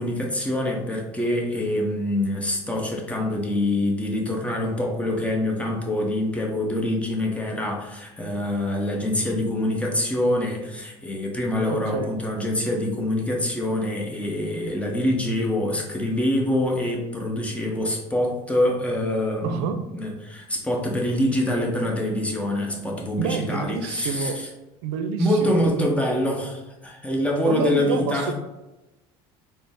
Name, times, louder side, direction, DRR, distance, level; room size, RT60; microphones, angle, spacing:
voice 1, 0.0-24.5 25.2-28.3, left 1 dB, 10° left, -1 dB, 0.9 m, -25 dB
voice 2, 11.7-12.1 19.4-19.8 23.2-24.4 24.8-25.9 27.4-28.3, right 6 dB, 85° right, 8 dB, 0.4 m, -28 dB
3.9 x 2.1 x 3.5 m, 1.0 s
supercardioid pair, 95°, 14 cm